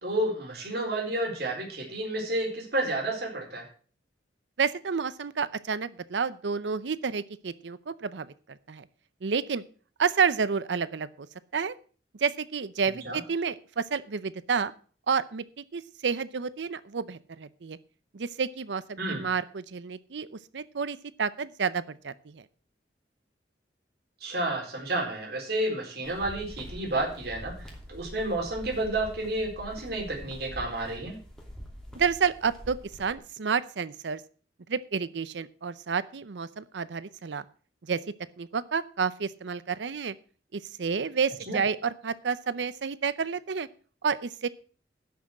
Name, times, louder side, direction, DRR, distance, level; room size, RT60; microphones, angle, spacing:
voice 1, 0.0-3.7 13.0-13.2 19.0-19.2 24.2-31.2 41.5-41.6, right 1 dB, 65° right, 1 dB, 4.2 m, -31 dB
voice 2, 4.6-8.8 9.2-9.6 10.0-11.3 11.5-11.7 12.2-14.7 15.1-17.8 18.1-22.4 31.9-34.2 34.7-37.4 37.9-38.0 38.4-40.1 40.5-43.7 44.0-44.5, right 6 dB, 90° right, 16 dB, 0.6 m, -30 dB
sound 1, 26.0-33.2, equal, 5° left, 2.9 m, -45 dB
11.5 x 6.2 x 7.5 m, 0.41 s
head